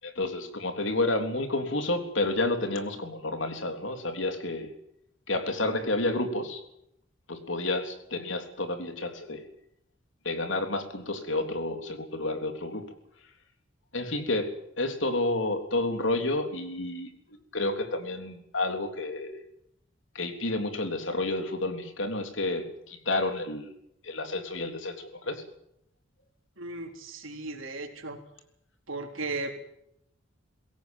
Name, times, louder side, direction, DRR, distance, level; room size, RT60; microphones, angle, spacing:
voice 1, 0.0-4.7 5.3-6.6 7.3-9.5 10.2-12.9 13.9-19.4 20.2-23.7 24.0-25.4, left 2 dB, 70° left, 6 dB, 3.5 m, -30 dB
voice 2, 26.6-28.2 28.9-29.6, right 3 dB, 90° right, 4 dB, 3.8 m, -36 dB
22.0 x 17.0 x 9.2 m, 0.77 s
head